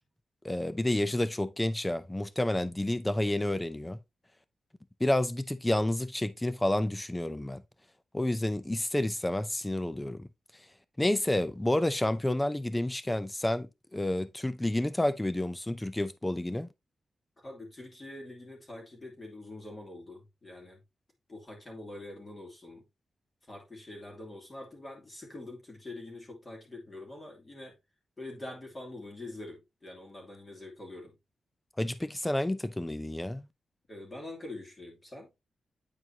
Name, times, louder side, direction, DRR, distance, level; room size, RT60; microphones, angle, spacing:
voice 1, 0.4-4.0 5.0-7.6 8.1-10.3 11.0-16.7 31.8-33.5, left 1 dB, 10° left, 0.5 m, -30 dB
voice 2, 17.4-20.8 21.3-22.8 23.5-27.8 28.2-31.1 33.9-35.3, left 2 dB, 25° left, 2.6 m, -45 dB
9.2 x 4.6 x 2.8 m
wide cardioid pair, 150°, 0 cm